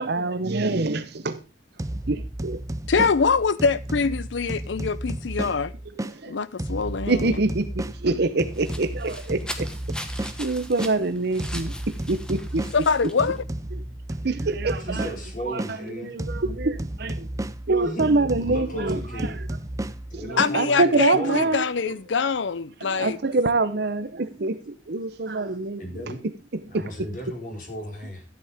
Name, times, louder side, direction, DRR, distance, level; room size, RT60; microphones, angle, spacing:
voice 1, 0.0-1.4 2.1-2.6 5.9-6.4 7.1-9.7 10.4-12.7 13.7-13.8 14.2-15.1 15.4-17.3 17.7-19.5 20.1-21.9 22.8-25.8 26.7-26.9, right 3 dB, 60° right, 0.8 m, -25 dB
sound 1, 1.8-6.2 6.6-11.0 11.4-15.8 16.2-20.6, right 1 dB, 20° right, 0.6 m, -33 dB
voice 2, 2.9-5.7 6.3-7.3 12.7-13.4 20.4-23.2, left 5 dB, 75° left, 0.6 m, -24 dB
sound 2, 8.3-13.4, equal, 5° left, 1.3 m, -40 dB
voice 3, 14.8-16.1 17.8-18.1 18.4-19.3 20.1-21.6 25.8-26.2 26.7-28.2, equal, 45° left, 5.0 m, -35 dB
13.5 x 8.6 x 3.5 m
head